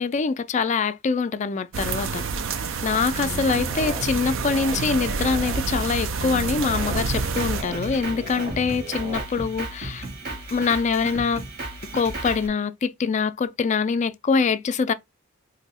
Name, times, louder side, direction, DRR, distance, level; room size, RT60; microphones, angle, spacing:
voice 1, 0.0-11.4 11.9-14.9, left 5 dB, 35° left, 0.3 m, -24 dB
sound 1, 1.7-7.6, right 5 dB, 65° right, 0.4 m, -28 dB
sound 2, 3.2-5.6 6.2-9.2, right 1 dB, 30° right, 0.8 m, -36 dB
Drum kit, 7.1-12.5, right 2 dB, 50° right, 1.3 m, -34 dB
2.6 x 2.3 x 4.1 m
head